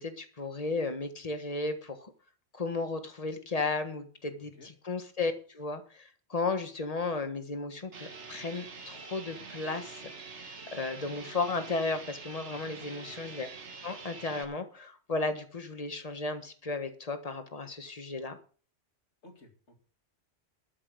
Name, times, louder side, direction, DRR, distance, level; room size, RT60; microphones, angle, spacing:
voice 1, 0.0-2.1 2.5-13.5 13.8-18.4, left 3 dB, 30° left, 8 dB, 1.5 m, -34 dB
voice 2, 4.3-4.7 19.2-19.8, left 1 dB, 70° left, 4 dB, 2.7 m, -56 dB
sound 1, 7.9-14.4, right 4 dB, 70° right, 1.8 m, -45 dB
13.0 x 6.1 x 7.8 m, 0.41 s
omnidirectional pair, 1.2 m